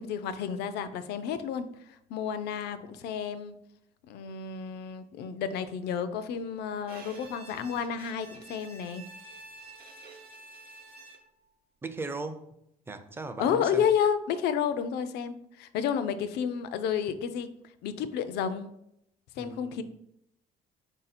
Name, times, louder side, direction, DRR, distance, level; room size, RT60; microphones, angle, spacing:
voice 1, 0.0-1.7 2.1-3.6 4.1-9.0 13.4-17.5 17.8-18.7 19.4-19.8, left 7 dB, 75° left, 11 dB, 0.4 m, -31 dB
Bowed string instrument, 6.9-11.5, right 2 dB, 65° right, 0.8 m, -49 dB
voice 2, 11.8-12.5 12.9-13.9 19.4-19.8, right 3 dB, 15° right, 9 dB, 0.4 m, -38 dB
4.2 x 2.7 x 4.1 m, 0.77 s
cardioid pair, 110°, 17 cm